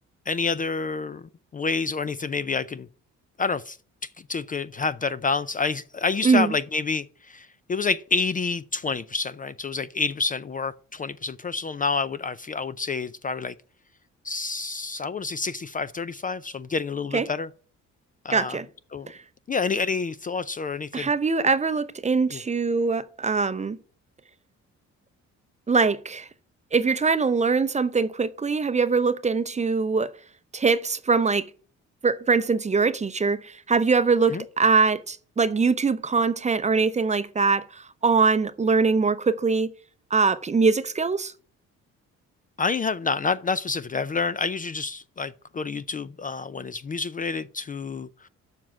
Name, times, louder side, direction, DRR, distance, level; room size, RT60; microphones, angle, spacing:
voice 1, 0.3-2.9 3.4-3.8 4.3-13.5 14.2-17.5 18.2-18.6 18.9-19.1 19.5-21.1 22.3-22.4 34.3-34.4 42.6-48.3, left 4 dB, 30° left, 0.4 m, -28 dB
voice 2, 18.3-18.7 19.1-19.2 20.9-23.8 25.7-26.3 26.7-30.1 30.5-31.5 32.0-39.7 40.1-41.3, right 4 dB, 25° right, 0.6 m, -22 dB
7.1 x 6.1 x 7.3 m
cardioid pair, 90°, 30 cm